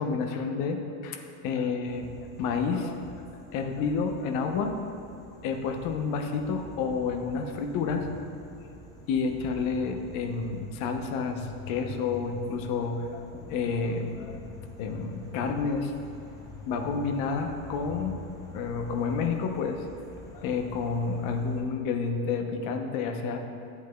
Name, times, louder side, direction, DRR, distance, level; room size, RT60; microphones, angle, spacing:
voice 1, 0.0-3.0 3.5-4.7 5.4-8.1 8.6-8.7 9.1-14.4 14.8-15.9 16.7-18.2 18.5-19.8 20.3-23.4, left 5 dB, 50° left, 4 dB, 0.8 m, -30 dB
sound 1, 1.9-21.6, left 3 dB, 10° left, 0.6 m, -46 dB
11.5 x 8.2 x 2.3 m, 2.5 s
cardioid pair, 165°, 41 cm